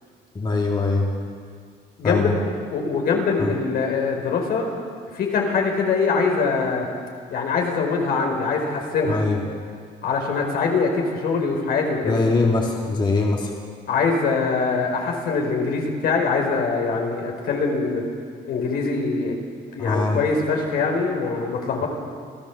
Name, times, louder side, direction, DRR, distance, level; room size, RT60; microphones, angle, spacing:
voice 1, 0.3-1.1 2.0-2.3 3.4-3.5 9.1-9.4 12.0-13.5 19.8-20.2, left 3 dB, 25° left, -1 dB, 2.9 m, -22 dB
voice 2, 2.0-2.3 2.7-4.7 5.1-6.9 7.3-9.2 10.0-12.2 13.9-18.0 18.4-19.4 19.7-21.9, left 4 dB, 65° left, 1 dB, 4.8 m, -23 dB
27.5 x 15.0 x 7.3 m, 2.1 s
cardioid pair, 110°, 17 cm